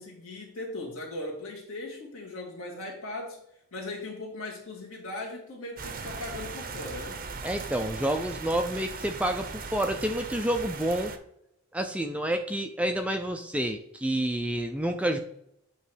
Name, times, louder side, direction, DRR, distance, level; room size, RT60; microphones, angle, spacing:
voice 1, 0.0-3.4 3.7-7.2, left 2 dB, 70° left, -2 dB, 2.1 m, -38 dB
sound 1, 5.8-11.2, right 4 dB, 40° right, 0.7 m, -38 dB
voice 2, 7.4-11.1 11.7-15.2, right 1 dB, 5° right, 5 dB, 0.4 m, -29 dB
8.2 x 3.1 x 5.0 m, 0.74 s
head